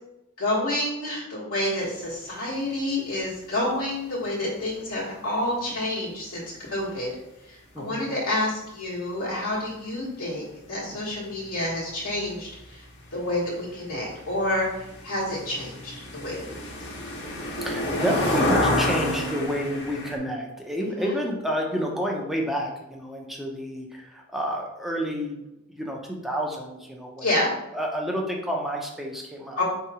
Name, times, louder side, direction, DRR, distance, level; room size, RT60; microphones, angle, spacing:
voice 1, 0.4-7.1 7.5-12.8 13.1-16.6 20.8-21.1 27.2-27.5 29.6-29.7, left 1 dB, 75° left, -6 dB, 1.3 m, -29 dB
sound 1, 12.1-12.2 12.5-20.2, left 1 dB, 55° left, 0.9 m, -29 dB
voice 2, 17.6-25.4 25.7-27.3 27.7-29.6, equal, ahead, 0 dB, 0.6 m, -29 dB
3.7 x 2.9 x 4.8 m, 0.93 s
head